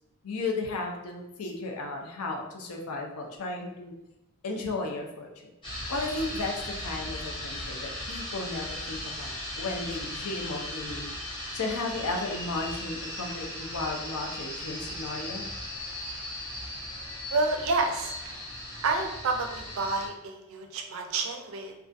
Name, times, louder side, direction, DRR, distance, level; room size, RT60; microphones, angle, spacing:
voice 1, 0.2-3.9 4.4-5.5 5.9-11.1 11.5-15.5, left 3 dB, 80° left, 2 dB, 0.5 m, -34 dB
sound 1, 5.6-20.1, left 1 dB, 20° left, 0.6 m, -37 dB
voice 2, 17.3-18.4 18.8-21.7, right 3 dB, 65° right, 4 dB, 0.4 m, -29 dB
2.3 x 2.2 x 2.5 m, 0.89 s
head